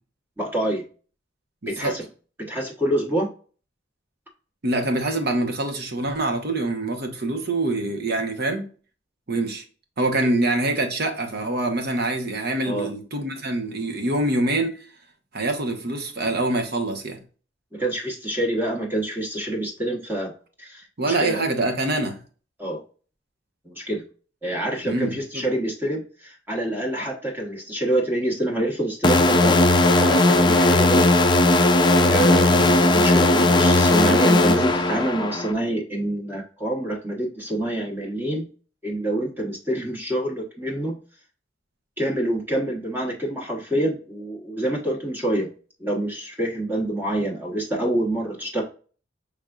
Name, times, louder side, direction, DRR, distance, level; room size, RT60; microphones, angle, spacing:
voice 1, 0.4-0.8 1.7-2.0 2.4-3.3 12.6-12.9 17.7-20.3 20.6-21.5 22.6-22.8 23.6-24.0 24.4-29.6 30.0-31.1 32.0-38.5 38.8-40.9 42.0-45.5 45.8-48.6, right 1 dB, 10° right, 1.0 m, -26 dB
voice 2, 1.6-1.9 4.6-8.7 9.3-9.6 10.0-14.9 15.3-17.2 21.0-22.2 24.8-25.5 32.5-32.7, right 2 dB, 55° right, 1.0 m, -25 dB
sound 1, 29.0-35.5, left 2 dB, 25° left, 0.5 m, -17 dB
6.3 x 3.4 x 2.4 m
head